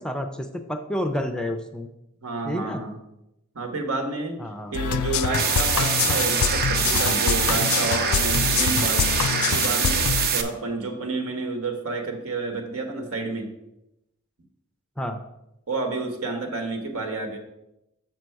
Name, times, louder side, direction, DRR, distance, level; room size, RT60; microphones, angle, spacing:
voice 1, 0.0-1.9 2.4-2.8 4.4-4.7 15.0-15.2, left 1 dB, 5° left, 6 dB, 0.4 m, -29 dB
voice 2, 2.2-3.0 3.5-4.4 4.7-9.0 9.5-13.5 15.7-17.4, right 3 dB, 75° right, 4 dB, 1.3 m, -30 dB
sound 1, 4.7-10.3, left 7 dB, 85° left, 0.4 m, -25 dB
sound 2, 5.3-10.4, right 7 dB, 45° right, 0.7 m, -24 dB
6.4 x 6.0 x 4.6 m, 0.87 s
head